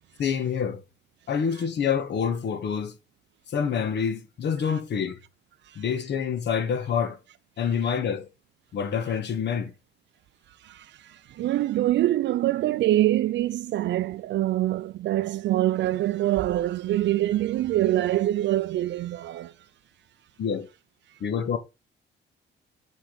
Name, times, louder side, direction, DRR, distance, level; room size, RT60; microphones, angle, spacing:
voice 1, 0.2-0.8 1.3-3.0 3.5-5.2 5.7-7.2 7.6-8.3 8.7-9.7 20.4-20.7 21.2-21.6, left 7 dB, 60° left, 1.3 m, -27 dB
voice 2, 10.6-19.5, right 14 dB, 65° right, 0.4 m, -25 dB
6.9 x 5.7 x 3.9 m
cardioid pair, 90°, 20 cm